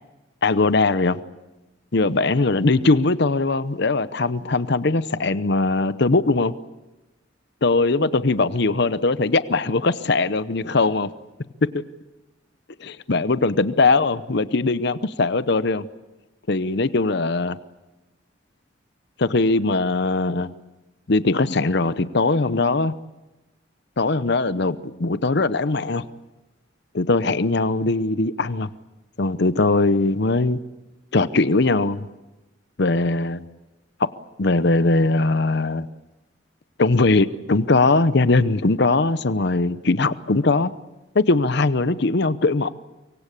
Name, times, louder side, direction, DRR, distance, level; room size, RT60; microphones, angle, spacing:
voice 1, 0.4-1.2 1.9-6.5 7.6-11.1 11.6-11.8 12.8-15.9 16.5-17.6 19.2-20.5 21.1-23.0 24.0-26.1 26.9-28.7 29.2-30.6 31.1-32.1 32.8-33.4 34.4-35.9 36.8-40.7 41.1-42.7, left 3 dB, 60° left, 14 dB, 0.8 m, -20 dB
24.5 x 24.0 x 8.4 m, 1.1 s
head